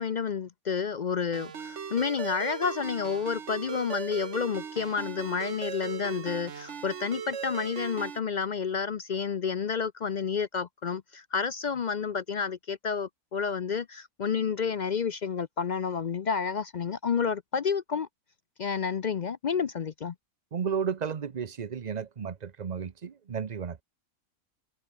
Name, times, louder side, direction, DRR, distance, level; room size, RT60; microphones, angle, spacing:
voice 1, 0.0-18.1 18.6-20.1, left 6 dB, 55° left, 0.5 m, -30 dB
Ringtone, 1.3-8.2, right 7 dB, 60° right, 1.5 m, -38 dB
voice 2, 20.5-23.8, right 7 dB, 40° right, 0.8 m, -33 dB
omnidirectional pair, 1.4 m